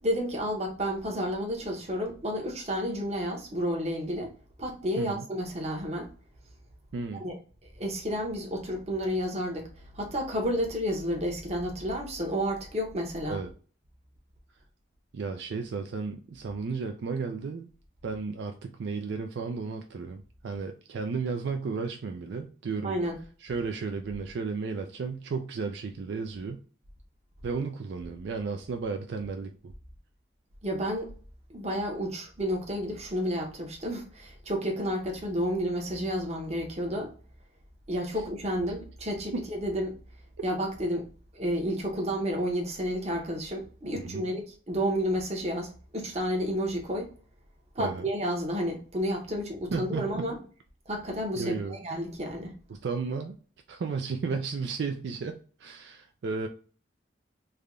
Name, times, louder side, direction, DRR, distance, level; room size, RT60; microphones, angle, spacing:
voice 1, 0.0-4.3 4.6-6.1 7.1-7.3 7.6-13.4 22.8-23.2 30.6-31.1 31.5-37.1 37.9-40.0 40.4-41.1 41.3-47.1 47.7-50.4 50.9-52.5, equal, 35° right, 1 dB, 0.9 m, -31 dB
voice 2, 6.9-7.2 13.3-13.5 15.1-17.7 18.0-23.0 23.4-26.6 27.4-29.7 38.1-38.2 39.3-39.4 44.0-44.2 47.8-48.0 49.7-50.3 51.4-51.8 52.7-53.3 53.7-56.5, right 4 dB, 65° right, 5 dB, 0.3 m, -33 dB
3.4 x 2.2 x 3.6 m, 0.40 s
head